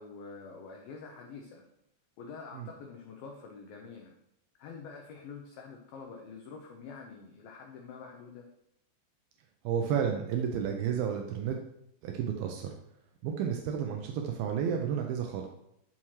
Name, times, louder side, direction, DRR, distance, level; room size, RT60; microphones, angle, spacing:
voice 1, 0.0-1.7 2.2-4.1 4.6-8.5, left 5 dB, 80° left, 2 dB, 2.1 m, -46 dB
voice 2, 9.6-11.6 12.0-12.7 13.2-15.5, right 8 dB, 85° right, 2 dB, 2.1 m, -31 dB
13.0 x 5.9 x 3.2 m, 0.78 s
omnidirectional pair, 5.2 m